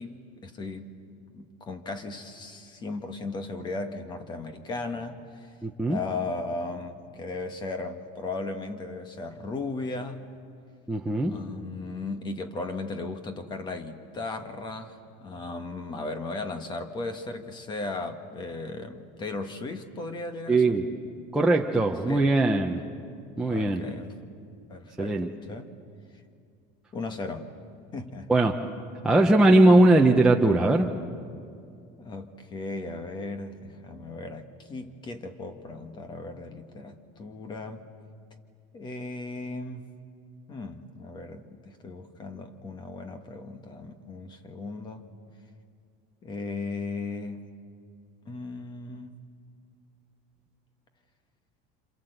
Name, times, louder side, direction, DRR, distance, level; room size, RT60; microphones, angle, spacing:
voice 1, 0.0-5.5 5.8-10.3 11.3-20.8 22.1-22.3 23.5-24.3 24.7-25.7 26.9-27.5 27.9-28.3 32.0-37.8 38.7-39.9 40.5-45.0 46.2-47.4 48.2-49.2, left 3 dB, 20° left, 7 dB, 1.4 m, -36 dB
voice 2, 5.6-6.0 10.9-11.3 20.5-20.8 21.3-22.8 23.4-23.8 25.0-25.3 28.3-28.5 29.0-30.9, right 2 dB, 5° right, -1 dB, 0.7 m, -20 dB
27.5 x 27.0 x 8.0 m, 2.4 s
cardioid pair, 175°, 21 cm